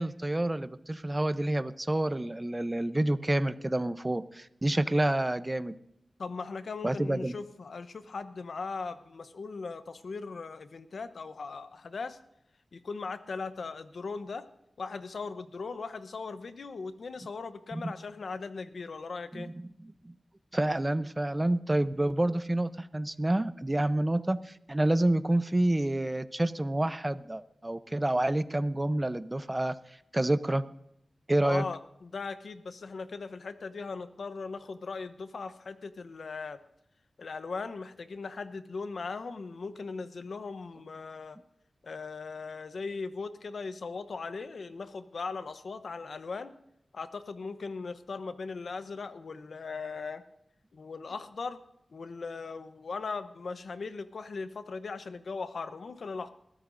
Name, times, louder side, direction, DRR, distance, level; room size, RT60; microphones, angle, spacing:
voice 1, 0.0-5.7 6.8-7.3 17.7-17.9 19.3-20.1 20.5-29.8 30.1-30.6 31.3-31.7, right 1 dB, 25° right, 12 dB, 0.7 m, -28 dB
voice 2, 6.2-12.2 12.7-14.4 14.8-19.5 31.4-36.6 37.2-41.4 41.8-46.5 46.9-50.2 50.7-51.6 51.9-56.3, left 4 dB, 80° left, 11 dB, 0.8 m, -39 dB
21.5 x 14.0 x 2.6 m, 0.79 s
cardioid pair, 45°, 0 cm